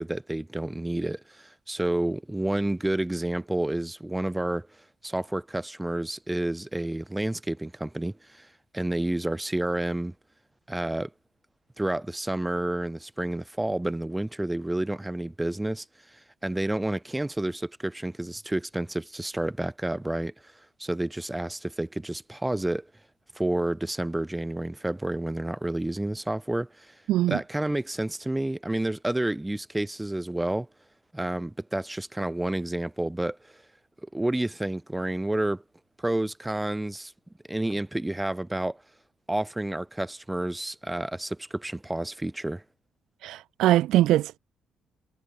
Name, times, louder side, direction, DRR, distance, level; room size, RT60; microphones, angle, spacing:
voice 1, 0.0-4.7 5.0-8.5 8.7-10.1 10.7-11.1 11.8-15.8 16.1-20.5 20.8-22.9 23.3-27.0 27.3-30.7 31.1-33.4 34.1-35.6 36.0-37.1 37.5-38.8 39.3-42.6, right 1 dB, 10° right, 0.6 m, -30 dB
voice 2, 27.1-27.4 43.2-44.4, right 14 dB, 85° right, 0.4 m, -22 dB
cardioid pair, 90°, 0 cm